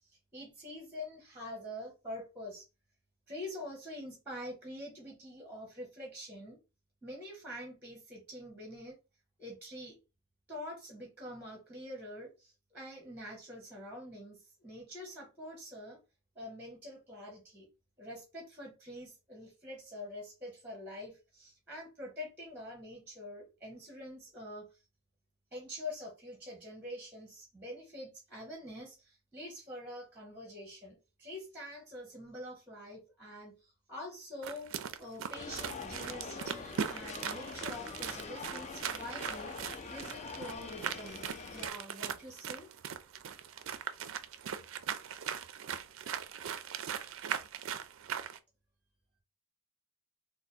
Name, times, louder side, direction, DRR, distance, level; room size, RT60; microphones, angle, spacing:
voice 1, 0.3-2.7 3.3-6.6 7.0-9.0 9.4-9.9 10.5-16.0 16.3-17.7 18.0-24.7 25.5-39.6 39.9-41.2 41.5-42.7, left 1 dB, 10° right, 1.1 m, -46 dB
sound 1, 34.4-48.4, right 8 dB, 60° right, 0.4 m, -40 dB
sound 2, 35.3-41.7, left 5 dB, 30° left, 0.3 m, -44 dB
3.4 x 2.0 x 4.1 m
head